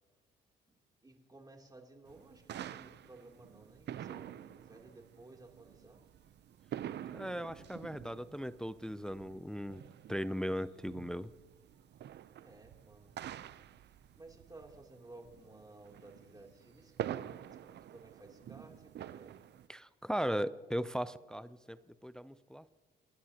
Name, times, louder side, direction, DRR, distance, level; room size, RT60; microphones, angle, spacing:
voice 1, 1.0-6.0 12.4-13.2 14.1-19.4, right 2 dB, 20° right, 1 dB, 2.9 m, -56 dB
sound 1, 2.1-19.7, right 11 dB, 60° right, 0.6 m, -47 dB
voice 2, 7.1-9.8 10.1-11.3 19.7-22.7, equal, 5° left, 15 dB, 0.4 m, -38 dB
29.0 x 13.0 x 2.9 m, 1.5 s
cardioid pair, 90°, 20 cm